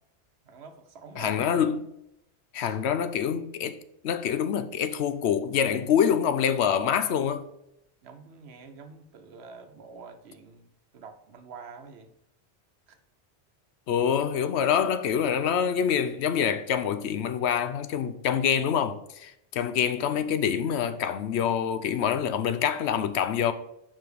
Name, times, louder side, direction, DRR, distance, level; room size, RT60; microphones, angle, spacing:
voice 1, 0.4-1.5 2.6-2.8 8.0-10.7 10.9-12.1 12.9-13.0, right 4 dB, 75° right, 1.0 m, -46 dB
voice 2, 1.2-1.9 2.5-3.8 4.0-7.5 13.9-23.5, left 8 dB, 80° left, 0.9 m, -26 dB
5.7 x 4.8 x 5.1 m
omnidirectional pair, 1.1 m